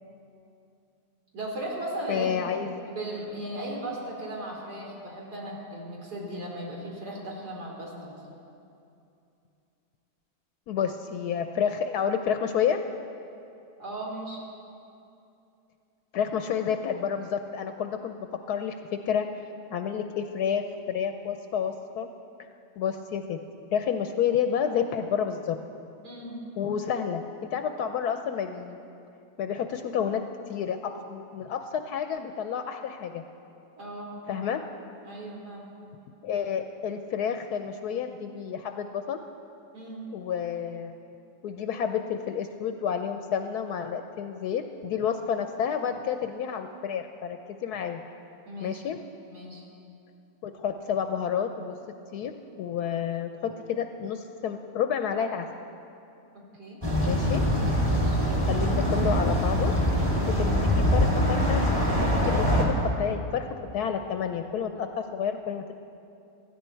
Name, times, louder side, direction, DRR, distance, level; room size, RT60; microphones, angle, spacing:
voice 1, 1.3-2.4 2.9-8.2 13.8-14.4 26.0-26.4 33.8-34.2 35.0-35.7 39.7-40.1 48.5-48.8 49.3-49.6 56.3-56.8 57.8-58.2, right 1 dB, 70° right, -2 dB, 3.3 m, -37 dB
voice 2, 2.1-2.8 10.7-12.8 16.1-19.3 19.7-22.1 22.8-23.4 23.7-25.6 26.6-28.8 29.4-30.2 30.5-33.2 34.3-34.6 36.2-39.2 40.1-40.9 41.4-48.0 48.6-49.0 50.4-51.8 52.1-52.3 52.6-55.5 57.0-57.4 58.5-59.7 60.3-60.5 60.9-61.6 61.9-63.5 63.7-65.8, left 8 dB, 75° left, 7 dB, 1.1 m, -30 dB
sound 1, 56.8-62.7, equal, 20° right, 2.4 m, -23 dB
16.0 x 14.0 x 4.5 m, 2.7 s
omnidirectional pair, 1.8 m